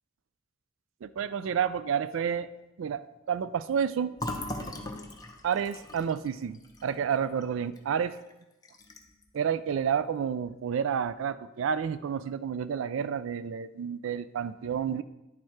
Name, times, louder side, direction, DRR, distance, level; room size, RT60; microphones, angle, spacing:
voice 1, 1.0-2.5 2.8-4.2 5.4-8.2 9.3-15.0, right 7 dB, 70° right, 15 dB, 0.3 m, -30 dB
Fill (with liquid), 4.2-7.8 8.2-8.3 8.6-9.2, left 1 dB, 20° left, 0.7 m, -39 dB
10.0 x 4.5 x 4.7 m, 0.96 s
head